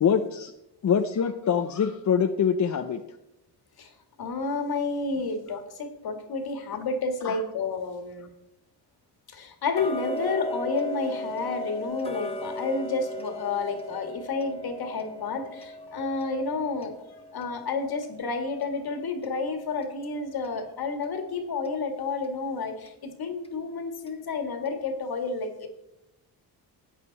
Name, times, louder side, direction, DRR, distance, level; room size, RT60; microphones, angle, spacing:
voice 1, 0.0-0.5 0.8-3.0 7.2-7.4, left 7 dB, 40° left, 6 dB, 0.8 m, -24 dB
voice 2, 4.2-8.3 9.3-17.0 17.3-25.7, left 4 dB, 60° left, 6 dB, 2.2 m, -30 dB
Tick-tock, 9.7-20.6 21.0-21.1 21.6-21.7 22.2-22.3 22.9-23.0 23.4-23.5 24.1-24.2 24.7-24.8, left 1 dB, 15° left, 1.5 m, -38 dB
14.0 x 9.0 x 4.2 m, 0.86 s
cardioid pair, 100°, 42 cm